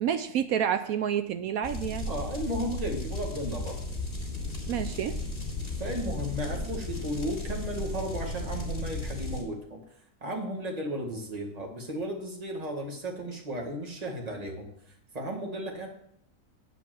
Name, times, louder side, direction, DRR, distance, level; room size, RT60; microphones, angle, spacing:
voice 1, 0.0-2.1 4.7-5.2, right 9 dB, 70° right, 10 dB, 1.0 m, -29 dB
sound 1, 1.6-9.4, left 2 dB, 30° left, 2.5 m, -35 dB
voice 2, 2.1-3.8 5.8-9.8 10.2-14.7 15.1-15.9, equal, 25° right, 1 dB, 1.7 m, -34 dB
8.7 x 5.1 x 7.6 m, 0.70 s
omnidirectional pair, 1.7 m